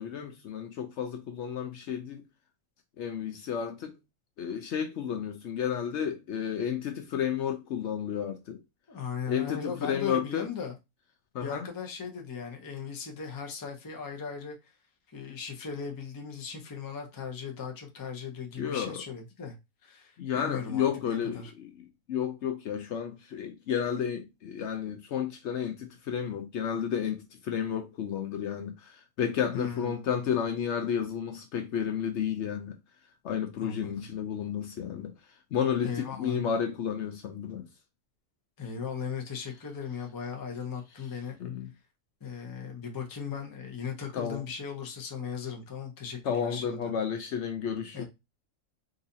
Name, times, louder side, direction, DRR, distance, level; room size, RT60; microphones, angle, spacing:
voice 1, 0.0-2.2 3.0-3.9 4.4-8.6 9.3-10.5 11.3-11.6 18.6-19.0 20.2-21.7 22.1-32.7 33.2-35.1 35.5-37.7 41.4-41.7 44.1-44.4 46.2-48.0, left 8 dB, 65° left, 0.8 m, -32 dB
voice 2, 8.9-10.8 11.4-14.7 15.1-19.5 19.8-21.5 29.5-30.0 33.6-34.1 35.8-36.4 38.6-41.4 42.2-46.9 47.9-48.0, left 6 dB, 25° left, 0.5 m, -37 dB
3.9 x 2.6 x 2.6 m
omnidirectional pair, 1.4 m